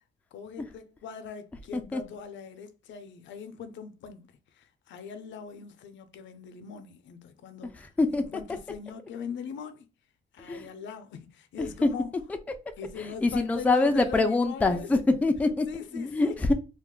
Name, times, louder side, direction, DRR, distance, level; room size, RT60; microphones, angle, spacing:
voice 1, 0.3-7.9 8.2-9.9 10.3-12.1 12.8-14.9 15.7-16.4, left 7 dB, 70° left, 0.5 m, -41 dB
voice 2, 11.6-11.9 13.0-15.7 15.9-16.5, left 2 dB, 5° left, 0.3 m, -25 dB
2.4 x 2.3 x 3.6 m
cardioid pair, 90°, 20 cm